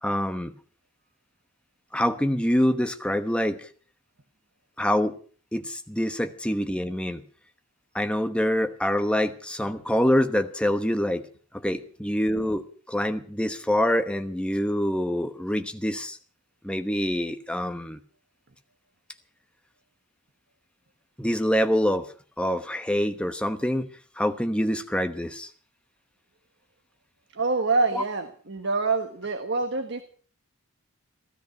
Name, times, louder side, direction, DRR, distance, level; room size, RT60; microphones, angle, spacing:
voice 1, 0.0-0.5 1.9-3.7 4.8-5.2 5.5-7.2 7.9-11.3 11.5-16.2 16.6-18.0 21.2-22.1 22.4-23.9 24.2-25.5 27.9-28.0, equal, 5° left, 8 dB, 1.0 m, -25 dB
voice 2, 27.3-30.0, right 3 dB, 55° right, 7 dB, 1.4 m, -26 dB
16.0 x 14.0 x 5.9 m, 0.43 s
head